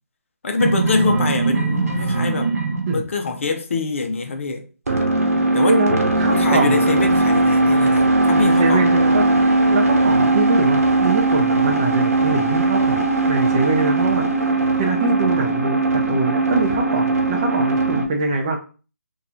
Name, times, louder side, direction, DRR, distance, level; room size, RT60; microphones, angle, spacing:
voice 1, 0.4-2.5 2.9-4.6 5.5-5.8 6.3-8.9, left 3 dB, 55° left, 0.6 m, -24 dB
sound 1, 0.6-3.0 4.9-18.1, right 2 dB, 70° right, 0.9 m, -19 dB
voice 2, 5.6-6.9 8.3-9.2 9.6-13.0 13.3-18.6, right 3 dB, 25° right, 0.5 m, -23 dB
2.9 x 2.3 x 3.8 m
hypercardioid pair, 160°, 8 cm